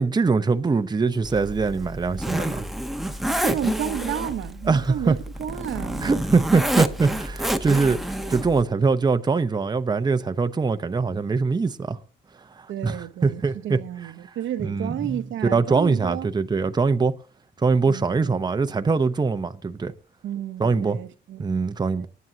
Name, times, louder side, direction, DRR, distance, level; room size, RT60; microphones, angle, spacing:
voice 1, 0.0-2.6 4.7-5.2 6.0-12.0 12.6-13.8 14.6-15.2 15.5-17.1 17.6-19.9 20.6-21.0 21.4-22.1, right 4 dB, 20° right, 0.8 m, -23 dB
Zipper (clothing), 1.2-8.6, right 1 dB, ahead, 1.1 m, -28 dB
voice 2, 3.3-6.2 12.7-16.3 17.9-18.3 20.2-21.5 22.0-22.1, right 10 dB, 75° right, 0.9 m, -32 dB
19.0 x 9.5 x 2.8 m
cardioid pair, 90°, 20 cm